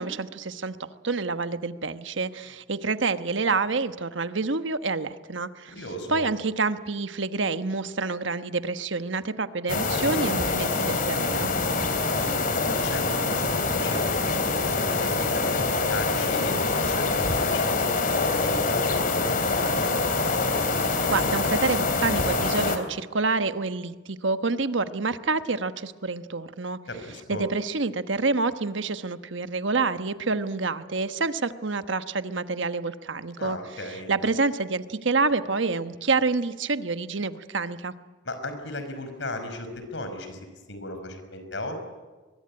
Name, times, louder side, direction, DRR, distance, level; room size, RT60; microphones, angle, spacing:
voice 1, 0.0-5.7 6.1-11.5 20.8-26.8 27.3-33.6 34.1-37.9, right 3 dB, 80° right, 10 dB, 1.2 m, -28 dB
voice 2, 5.7-6.2 12.2-20.2 26.9-27.4 33.4-34.1 38.2-41.8, left 1 dB, 70° left, 8 dB, 5.3 m, -37 dB
sound 1, 9.7-22.8, left 3 dB, 45° left, 3.0 m, -25 dB
23.0 x 22.5 x 9.9 m, 1.3 s
head